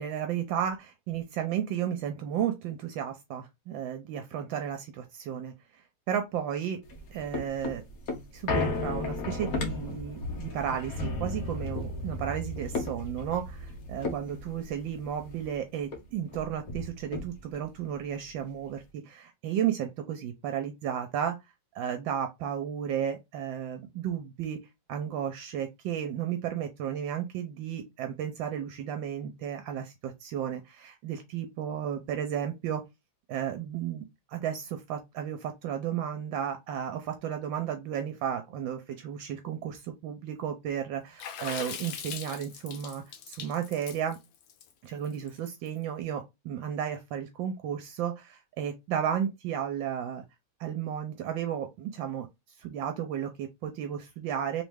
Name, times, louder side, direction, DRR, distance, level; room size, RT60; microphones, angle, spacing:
voice 1, 0.0-6.8 7.1-7.8 8.3-21.4 21.7-24.6 24.9-32.8 33.3-44.2 44.8-50.2 50.6-52.3 52.6-54.6, right 9 dB, 80° right, 1.3 m, -33 dB
sound 1, 6.8-15.6 15.9-16.0 16.3-17.7 18.1-18.2, left 2 dB, 50° left, 1.4 m, -34 dB
Water / Splash splatter, 41.2-45.7, left 8 dB, 80° left, 1.5 m, -40 dB
3.5 x 3.1 x 3.3 m
omnidirectional pair, 2.1 m